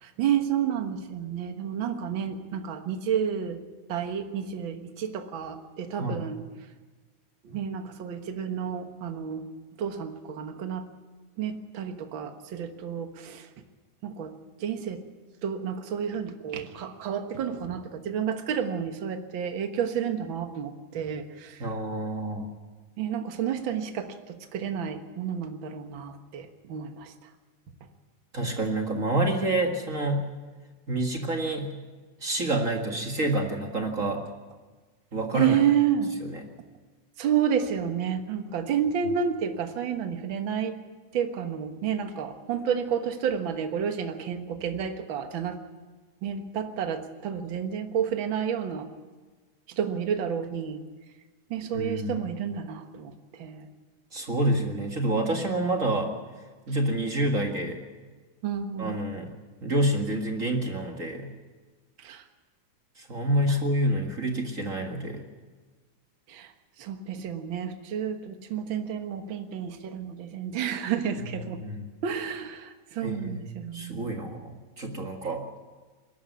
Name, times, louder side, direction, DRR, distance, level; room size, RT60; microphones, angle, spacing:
voice 1, 0.0-3.6 3.9-6.4 7.4-9.4 9.8-10.9 11.4-13.5 14.0-14.3 14.6-15.0 15.4-21.7 23.0-27.1 35.3-36.1 37.2-40.8 41.1-45.6 46.2-48.9 49.7-50.8 51.5-53.1 53.4-53.7 58.4-59.0 62.0-62.2 63.5-63.6 66.3-66.5 66.8-71.6 72.0-74.1, right 8 dB, 50° right, 6 dB, 1.7 m, -30 dB
voice 2, 21.6-22.5 28.3-30.3 30.9-31.8 32.2-34.2 35.1-35.6 36.2-36.4 51.7-52.2 54.1-56.1 56.7-57.8 58.8-59.3 59.6-61.3 63.0-65.2 71.4-71.8 73.0-73.4 73.7-75.6, right 1 dB, 30° right, 2 dB, 1.8 m, -28 dB
21.5 x 13.0 x 9.5 m, 1.3 s
omnidirectional pair, 3.4 m